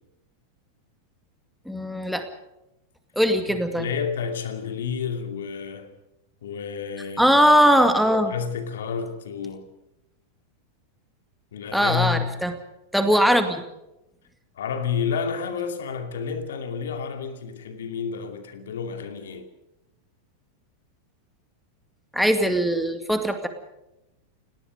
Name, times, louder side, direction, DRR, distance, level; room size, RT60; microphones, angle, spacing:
voice 1, 1.7-2.3 3.2-3.9 7.2-8.3 11.7-12.5 12.9-13.6 22.1-23.5, equal, ahead, 2.2 m, -20 dB
voice 2, 3.5-5.9 6.4-7.4 8.3-9.7 11.5-12.3 14.6-19.5, left 6 dB, 60° left, 2.5 m, -30 dB
29.5 x 18.5 x 5.2 m
figure-of-eight pair, 90°, 0 cm